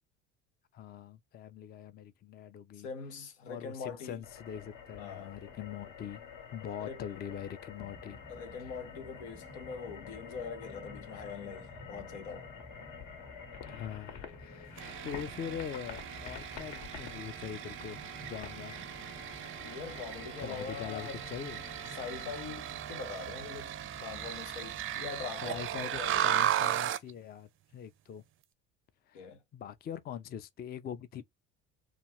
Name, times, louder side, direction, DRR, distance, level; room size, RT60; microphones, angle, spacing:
voice 1, 0.7-2.9 3.5-6.2 6.5-8.2 8.6-8.7 13.7-14.7 15.0-18.8 20.4-21.6 25.4-28.2 29.1-31.2, left 8 dB, 30° left, 0.4 m, -43 dB
voice 2, 2.8-4.2 5.0-5.3 6.8-7.0 8.3-12.5 19.6-21.2 22.0-26.4 29.1-29.4, left 5 dB, 90° left, 0.8 m, -43 dB
sound 1, 4.2-22.2, left 6 dB, 60° left, 1.0 m, -49 dB
sound 2, 7.8-26.2, equal, 15° left, 0.8 m, -53 dB
sound 3, 14.8-27.1, right 11 dB, 40° right, 0.4 m, -36 dB
2.4 x 2.4 x 2.9 m
supercardioid pair, 80°, 32 cm